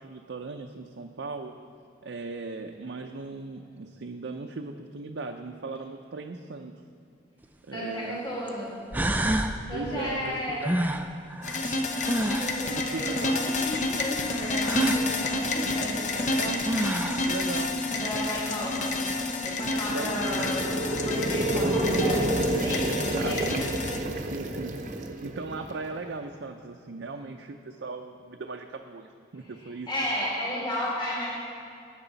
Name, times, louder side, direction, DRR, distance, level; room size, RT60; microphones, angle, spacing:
voice 1, 0.0-1.5 2.0-6.7 7.6-8.2 9.7-11.1 12.7-13.4 15.6-16.7 17.3-17.8 19.9-20.1 23.1-23.8 24.2-24.8 25.2-29.9, right 3 dB, 80° right, 3 dB, 0.6 m, -38 dB
sound 1, 7.4-7.5 8.5-8.6 8.9-9.6 10.6-12.6 14.6-15.1 16.3-16.4 16.6-17.3, right 1 dB, 10° right, 0.4 m, -27 dB
voice 2, 7.7-8.8 9.7-10.6 12.4-16.3 17.9-18.9 19.4-23.6 29.6-31.3, equal, 25° left, -7 dB, 2.5 m, -33 dB
sound 2, 11.4-24.0, left 2 dB, 40° left, 0.8 m, -29 dB
sound 3, 19.9-25.9, right 1 dB, 40° right, 0.7 m, -29 dB
16.5 x 8.9 x 4.0 m, 2.4 s
head